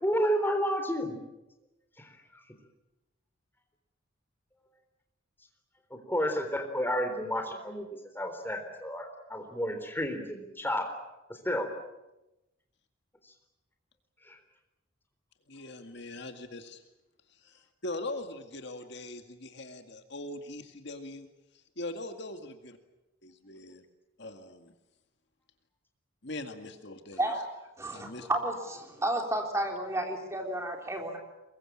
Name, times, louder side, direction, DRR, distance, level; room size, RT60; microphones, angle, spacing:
voice 1, 0.0-1.1 2.0-2.1 5.9-7.9 8.1-10.9 11.4-11.7 14.3-14.4, equal, 10° left, 5 dB, 3.8 m, -31 dB
voice 2, 15.5-16.8 17.4-21.3 21.8-22.8 23.2-23.9 24.2-24.7 26.2-27.3 27.9-28.3, left 2 dB, 55° left, 6 dB, 2.1 m, -41 dB
voice 3, 27.8-31.2, right 1 dB, 15° right, 2 dB, 3.6 m, -32 dB
24.0 x 22.0 x 8.8 m, 0.97 s
head